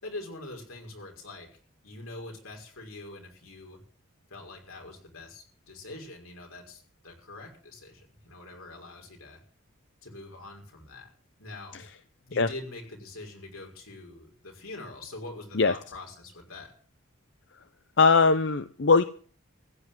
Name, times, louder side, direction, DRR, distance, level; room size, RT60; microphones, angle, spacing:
voice 1, 0.0-1.6 1.8-3.8 4.3-9.4 10.0-11.1 11.4-11.9 12.3-16.7, left 2 dB, 85° left, 2 dB, 5.8 m, -44 dB
voice 2, 18.0-19.0, left 4 dB, 55° left, 11 dB, 0.7 m, -20 dB
15.5 x 9.8 x 7.7 m, 0.43 s
head